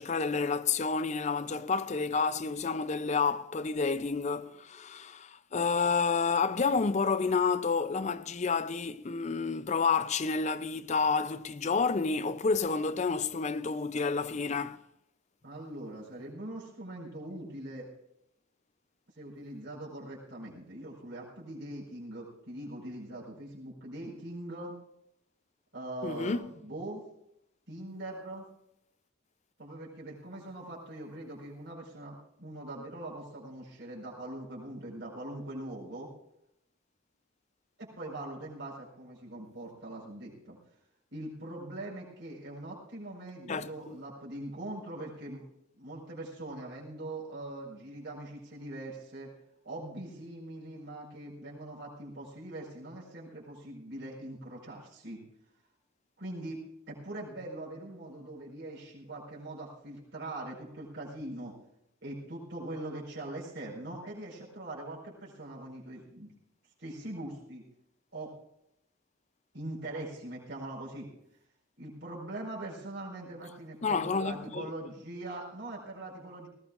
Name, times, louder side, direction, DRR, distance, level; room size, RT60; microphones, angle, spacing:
voice 1, 0.0-14.8 26.0-26.5 43.5-44.0 73.8-74.7, left 4 dB, 35° left, 0.5 m, -29 dB
voice 2, 15.4-17.9 19.2-24.7 25.7-27.0 27.7-28.4 29.6-36.1 37.8-40.6 41.1-45.4 45.8-49.3 49.6-55.2 56.2-56.6 56.9-61.5 62.0-66.3 66.8-67.6 68.1-68.3 69.5-71.1 71.8-76.5, right 1 dB, 55° right, 4.9 m, -42 dB
19.0 x 19.0 x 2.5 m
head